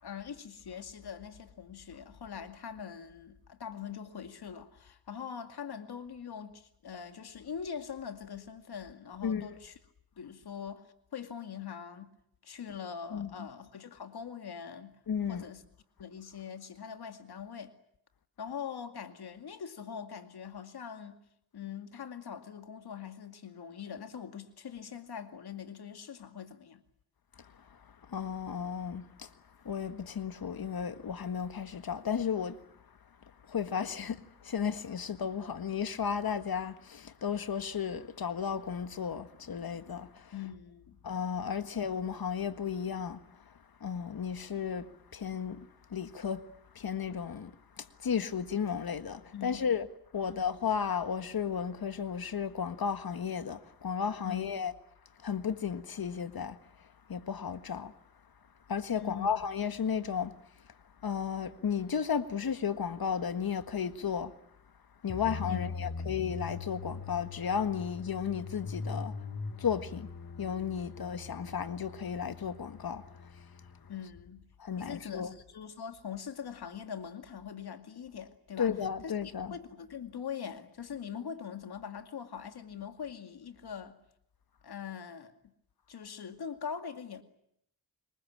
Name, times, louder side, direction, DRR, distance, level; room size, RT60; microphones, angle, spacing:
voice 1, 0.0-9.7 10.2-12.2 12.4-15.0 15.3-15.6 16.0-17.7 18.4-21.2 21.5-26.8 40.3-41.0 49.3-49.6 50.2-50.3 54.2-54.5 59.0-59.3 65.5-65.6 73.9-74.4 74.8-78.7 79.0-84.0 84.6-85.3 85.9-87.2, left 7 dB, 85° left, 2.4 m, -42 dB
voice 2, 13.1-13.5 15.1-15.5 27.4-27.8 28.1-29.3 29.6-32.6 33.4-40.3 41.0-43.5 43.8-46.4 46.7-49.9 50.1-54.7 55.2-57.9 58.7-60.3 61.0-64.3 65.0-69.2 69.6-70.1 70.4-73.3 74.6-75.3 78.6-79.5, left 7 dB, 70° left, 1.7 m, -34 dB
sound 1, 65.1-73.9, left 5 dB, 45° left, 1.9 m, -41 dB
27.0 x 22.5 x 8.8 m
cardioid pair, 55°, 38 cm